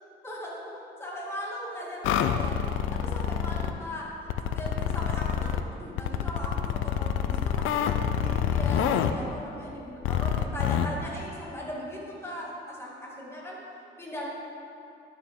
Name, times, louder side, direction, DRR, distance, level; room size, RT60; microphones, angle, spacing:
voice 1, 0.2-4.1 4.4-7.9 8.2-13.6 14.0-14.3, left 1 dB, 10° left, -5 dB, 2.4 m, -38 dB
sound 1, 2.0-3.7 4.3-5.6 6.0-9.1 10.0-10.9, left 9 dB, 85° left, 0.5 m, -27 dB
11.5 x 7.1 x 3.7 m, 2.6 s
cardioid pair, 90°, 20 cm